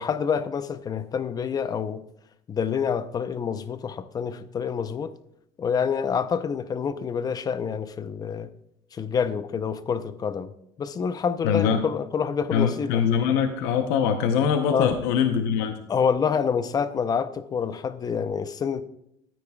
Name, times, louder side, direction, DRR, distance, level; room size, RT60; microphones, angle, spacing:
voice 1, 0.0-2.0 2.5-5.1 5.6-8.5 8.9-10.5 10.8-13.0 14.7-14.9 15.9-18.8, left 6 dB, 35° left, 0.7 m, -27 dB
voice 2, 11.4-11.9 12.5-15.7, left 7 dB, 90° left, 0.8 m, -23 dB
13.5 x 9.3 x 2.3 m
cardioid pair, 110°, 12 cm